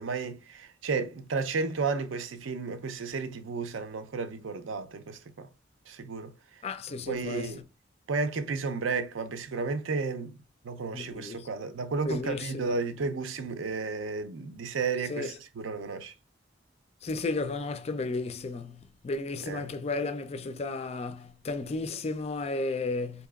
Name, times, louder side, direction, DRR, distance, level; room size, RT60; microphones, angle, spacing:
voice 1, 0.0-5.5 5.9-6.3 7.1-7.6 8.1-10.4 10.6-16.1 19.5-19.7, right 4 dB, 80° right, 0.5 m, -33 dB
voice 2, 6.6-7.6 10.9-11.5 12.0-12.7 15.1-15.4 17.0-23.3, left 3 dB, 35° left, 0.3 m, -33 dB
4.0 x 2.8 x 2.3 m
head